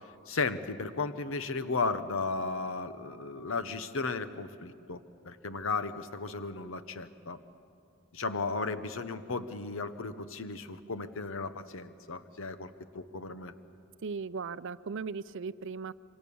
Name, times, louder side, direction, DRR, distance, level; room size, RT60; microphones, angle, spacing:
voice 1, 0.3-7.4 8.1-13.5, left 4 dB, 65° left, 11 dB, 1.0 m, -35 dB
voice 2, 14.0-15.9, right 5 dB, 60° right, 16 dB, 0.5 m, -37 dB
26.5 x 24.5 x 7.1 m, 2.5 s
head